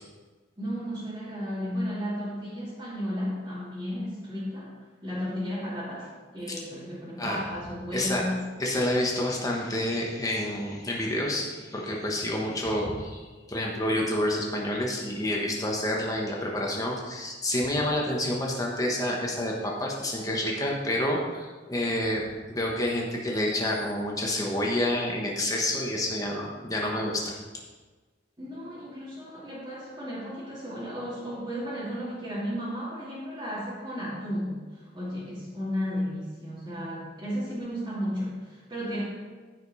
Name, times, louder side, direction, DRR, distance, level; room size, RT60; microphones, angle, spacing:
voice 1, 0.6-4.7 5.0-8.4 28.4-39.0, equal, 25° right, -11 dB, 2.5 m, -34 dB
voice 2, 7.9-8.3 8.6-27.4, left 1 dB, 20° left, -2 dB, 1.2 m, -28 dB
15.0 x 5.2 x 4.2 m, 1.3 s
head